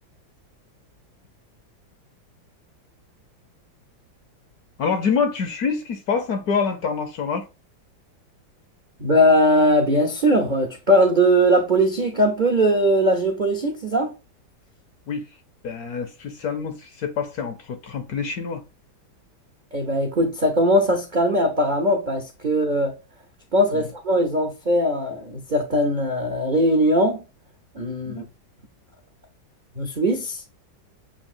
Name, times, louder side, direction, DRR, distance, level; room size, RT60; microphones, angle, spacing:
voice 1, 4.8-7.5 15.1-15.2 15.6-18.6 23.7-23.8 28.0-28.3, left 5 dB, 60° left, 1.0 m, -26 dB
voice 2, 9.0-14.2 19.7-22.9 23.5-27.2 27.7-28.2 29.8-30.5, equal, 50° right, 0.5 m, -20 dB
7.1 x 2.7 x 2.5 m
omnidirectional pair, 2.1 m